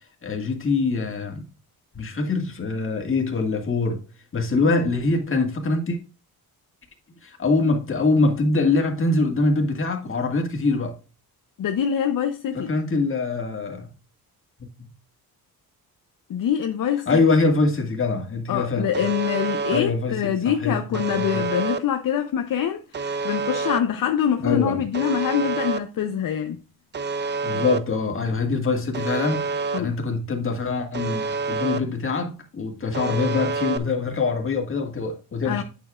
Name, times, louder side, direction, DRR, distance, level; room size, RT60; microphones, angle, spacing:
voice 1, 0.2-1.5 1.9-4.0 4.3-6.0 7.2-10.9 12.5-13.9 14.6-14.9 17.1-18.9 19.7-21.5 24.4-24.9 27.4-35.6, left 3 dB, 35° left, 2.0 m, -24 dB
voice 2, 11.6-12.7 16.3-17.2 18.5-26.6 29.7-29.9 35.4-35.6, left 9 dB, 55° left, 0.8 m, -25 dB
Alarm, 18.9-19.8 20.9-21.8 22.9-23.8 24.9-25.8 26.9-27.8 28.9-29.8 30.9-31.8 32.9-33.8, right 4 dB, 30° right, 0.6 m, -27 dB
8.8 x 7.1 x 2.4 m
cardioid pair, 130°, 38 cm